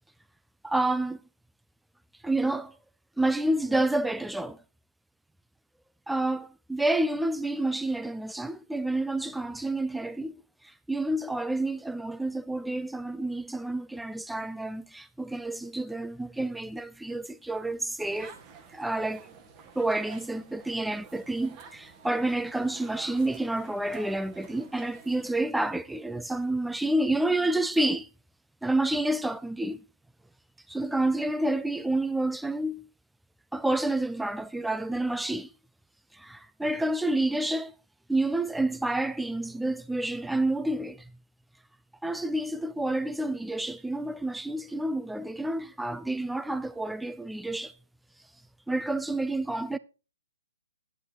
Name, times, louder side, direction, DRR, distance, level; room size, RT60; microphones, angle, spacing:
voice 1, 0.6-1.2 2.2-2.7 3.2-4.6 6.1-10.4 10.6-18.3 18.7-19.3 19.8-28.1 28.6-29.8 30.7-32.9 33.5-35.5 36.1-37.7 38.1-41.1 42.0-47.7 48.7-49.8, right 2 dB, 5° right, 0.5 m, -29 dB
sound 1, 18.0-25.3, right 6 dB, 25° right, 2.0 m, -50 dB
11.0 x 9.6 x 4.4 m
hypercardioid pair, 135°, 0 cm